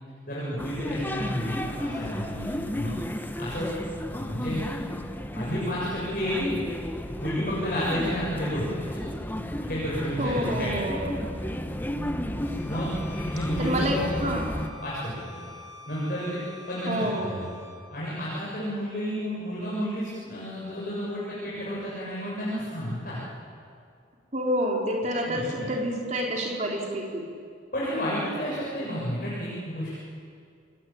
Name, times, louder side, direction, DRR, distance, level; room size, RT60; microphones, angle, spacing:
voice 1, 0.3-2.9 3.4-3.7 4.1-4.6 5.3-6.5 7.2-8.8 9.6-10.9 12.6-14.0 14.8-15.5 15.9-16.4 16.7-17.5 17.9-23.2 25.2-25.7 27.7-29.9, equal, 45° left, -7 dB, 7.3 m, -31 dB
sound 1, 0.6-14.7, left 1 dB, 10° left, 1.2 m, -33 dB
voice 2, 10.2-11.2 13.6-14.6 16.9-17.4 24.3-27.3, equal, 35° right, 0 dB, 4.2 m, -28 dB
Bowed string instrument, 12.4-17.8, left 2 dB, 75° left, 7.3 m, -47 dB
28.5 x 21.5 x 8.9 m, 2.4 s
head